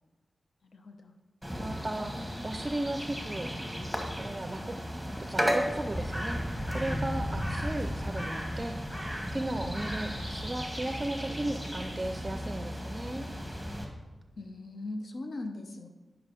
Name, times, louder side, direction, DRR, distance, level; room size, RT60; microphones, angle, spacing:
voice 1, 0.6-1.1 14.4-15.9, left 2 dB, 70° left, 5 dB, 0.8 m, -40 dB
sound 1, 1.4-13.8, equal, 10° left, 1.6 m, -34 dB
voice 2, 1.6-2.1 2.4-3.5 4.2-4.8 5.2-6.4 6.7-13.3, right 1 dB, 25° right, 7 dB, 0.5 m, -36 dB
10.0 x 5.8 x 5.1 m, 1.2 s
wide cardioid pair, 105°, 0 cm